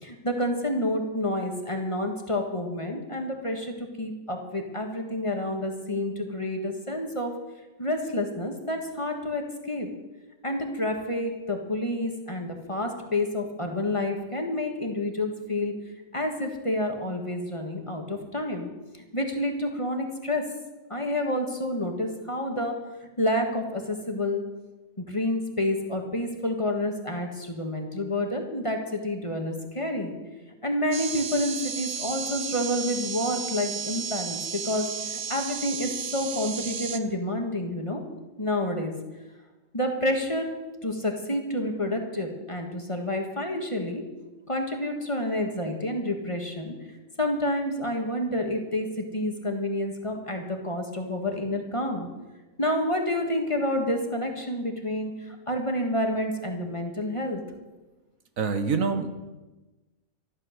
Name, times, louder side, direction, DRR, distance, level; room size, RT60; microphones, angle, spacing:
voice 1, 0.0-7.3 7.8-9.9 10.4-15.7 16.1-18.7 19.1-20.4 20.9-22.7 23.2-24.4 25.0-30.2 30.6-38.0 38.4-38.9 39.7-40.5 40.8-44.0 44.5-46.7 47.2-52.1 52.6-57.4, left 1 dB, 20° left, 3 dB, 1.6 m, -29 dB
sound 1, 30.9-37.0, right 6 dB, 50° right, 0.9 m, -33 dB
voice 2, 58.4-59.1, right 5 dB, 70° right, 8 dB, 1.5 m, -26 dB
13.5 x 11.0 x 6.6 m, 1.1 s
omnidirectional pair, 1.5 m